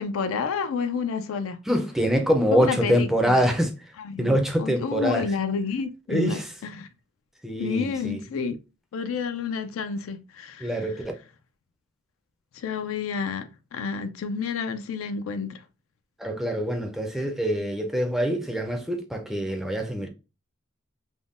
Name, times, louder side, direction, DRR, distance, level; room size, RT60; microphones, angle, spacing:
voice 1, 0.0-1.6 2.5-3.4 4.0-6.9 7.6-8.6 8.9-11.0 12.5-15.6, left 5 dB, 75° left, 0.4 m, -30 dB
voice 2, 1.7-3.7 4.2-5.2 6.1-6.4 7.4-8.2 10.6-11.0 16.2-20.1, equal, ahead, 0.4 m, -24 dB
3.5 x 2.1 x 2.4 m
head